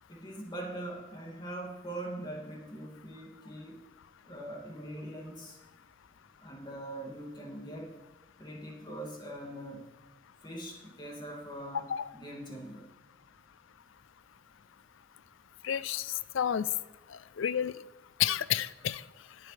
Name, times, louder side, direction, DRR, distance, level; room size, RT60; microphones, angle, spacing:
voice 1, 0.1-3.8 4.2-5.6 6.4-8.0 8.4-9.9 10.4-11.9 12.1-12.9, right 1 dB, 25° left, -1 dB, 2.3 m, -42 dB
voice 2, 15.6-16.7 17.4-17.8 18.2-19.0, left 9 dB, 70° left, 17 dB, 0.4 m, -30 dB
21.0 x 7.8 x 3.3 m, 1.1 s
head